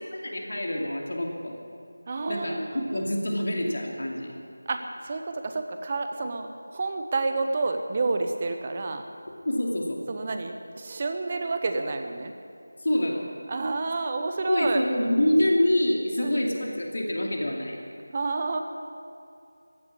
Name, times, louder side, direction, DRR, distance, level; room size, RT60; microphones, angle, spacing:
voice 1, 0.1-1.6 2.3-2.6 2.8-4.3 9.4-10.0 12.8-13.2 14.5-17.8, left 1 dB, 50° left, 0 dB, 2.5 m, -26 dB
voice 2, 2.1-3.0 4.7-9.1 10.1-12.3 13.5-14.8 16.2-16.8 18.1-18.6, right 3 dB, 25° right, 6 dB, 0.9 m, -30 dB
15.5 x 9.7 x 8.4 m, 2.5 s
figure-of-eight pair, 165°, 0 cm